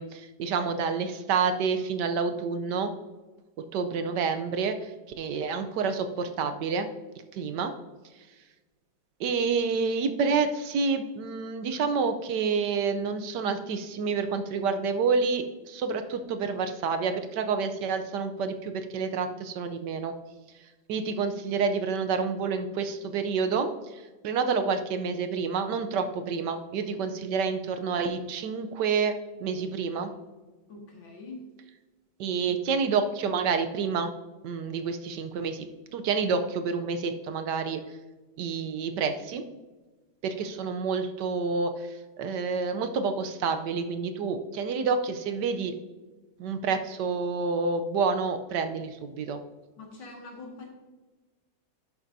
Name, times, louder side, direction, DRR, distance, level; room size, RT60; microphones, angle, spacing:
voice 1, 0.0-2.9 3.7-6.9 7.3-7.7 9.2-20.1 20.9-30.1 32.2-34.1 34.4-37.8 38.4-39.4 40.2-45.7 46.4-49.4, right 5 dB, 70° right, 8 dB, 1.2 m, -28 dB
voice 2, 30.7-31.4 49.8-50.7, left 3 dB, 90° left, 0 dB, 2.7 m, -44 dB
11.0 x 7.3 x 2.6 m, 1.2 s
omnidirectional pair, 2.1 m